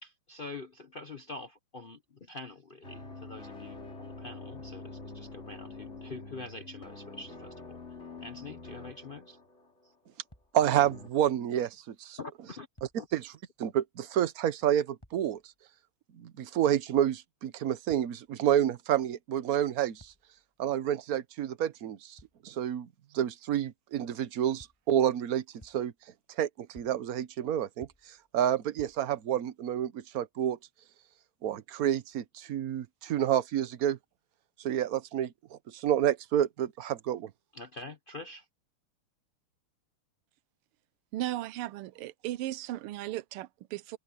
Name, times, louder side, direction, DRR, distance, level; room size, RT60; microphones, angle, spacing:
voice 1, 0.0-9.4 9.8-9.9 12.2-12.7 12.9-13.1 37.5-38.5, left 3 dB, 70° left, 0.5 m, -45 dB
sound 1, 2.8-9.9 10.6-11.1, left 3 dB, 30° left, 4.0 m, -46 dB
sound 2, 10.3-10.9 11.4-11.5 12.7-13.4 15.0-15.6 17.9-18.5 20.0-20.6 22.2-22.6 24.6-25.1 25.6-26.2 26.7-27.4 27.8-28.4 28.8-29.4, equal, 10° left, 5.6 m, -59 dB
voice 2, 10.5-12.2 13.1-13.3 13.6-15.5 16.1-20.1 20.6-22.9 23.1-25.9 26.3-30.6 31.4-34.0 34.6-37.3, right 10 dB, 55° right, 1.1 m, -29 dB
voice 3, 41.1-44.0, right 14 dB, 85° right, 1.5 m, -36 dB
omnidirectional pair, 2.4 m